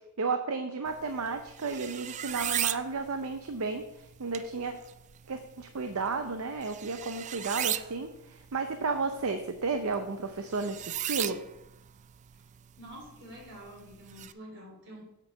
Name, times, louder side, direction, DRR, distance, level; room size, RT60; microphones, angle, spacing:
voice 1, 0.2-4.7 5.3-11.4, right 4 dB, 70° right, 7 dB, 0.7 m, -33 dB
sound 1, 0.9-14.3, right 11 dB, 35° right, 0.3 m, -38 dB
voice 2, 12.8-15.0, equal, 55° right, -2 dB, 3.4 m, -47 dB
8.4 x 5.3 x 6.4 m, 0.88 s
head